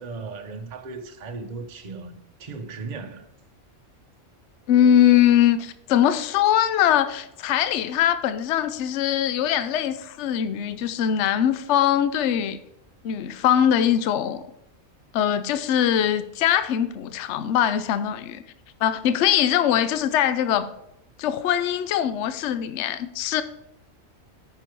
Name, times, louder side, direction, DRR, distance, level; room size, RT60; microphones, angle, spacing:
voice 1, 0.0-3.3, right 4 dB, 40° right, 0.9 m, -37 dB
voice 2, 4.7-12.6 13.0-14.4 15.1-18.4 18.8-20.7 21.2-23.4, left 10 dB, 70° left, 0.9 m, -22 dB
9.9 x 5.9 x 4.6 m
omnidirectional pair, 1.3 m